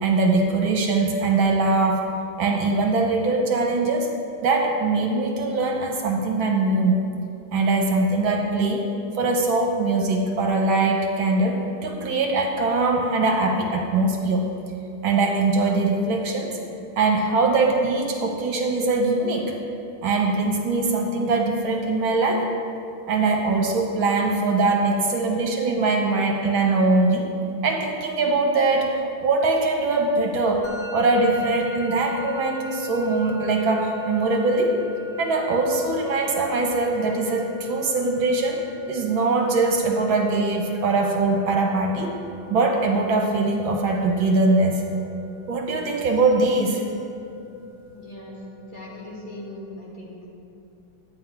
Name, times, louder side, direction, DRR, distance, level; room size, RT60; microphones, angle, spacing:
voice 1, 0.0-2.1 2.4-4.1 4.4-7.0 7.5-8.9 9.1-14.5 15.0-16.5 17.0-19.6 20.0-22.5 23.1-27.3 27.6-30.7 30.9-34.8 35.2-38.6 38.9-42.2 42.5-44.8 45.5-46.8, right 3 dB, 75° right, 1 dB, 1.9 m, -22 dB
Musical instrument, 30.6-49.5, left 3 dB, 40° left, 0.4 m, -39 dB
voice 2, 47.9-48.4 48.7-50.2, left 1 dB, 25° left, -7 dB, 2.5 m, -39 dB
12.5 x 9.3 x 4.7 m, 2.6 s
omnidirectional pair, 2.2 m